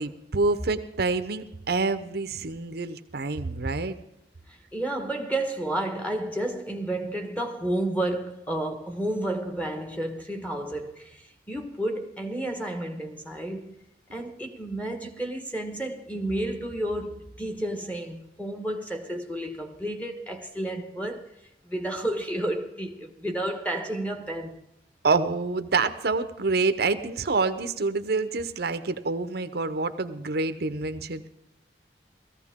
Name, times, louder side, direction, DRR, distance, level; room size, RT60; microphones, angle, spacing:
voice 1, 0.0-4.0 25.0-31.3, right 3 dB, 60° right, 0.7 m, -27 dB
voice 2, 4.5-13.8 14.1-21.4 21.6-24.6, right 1 dB, 10° left, 1.4 m, -31 dB
17.5 x 14.5 x 3.7 m
head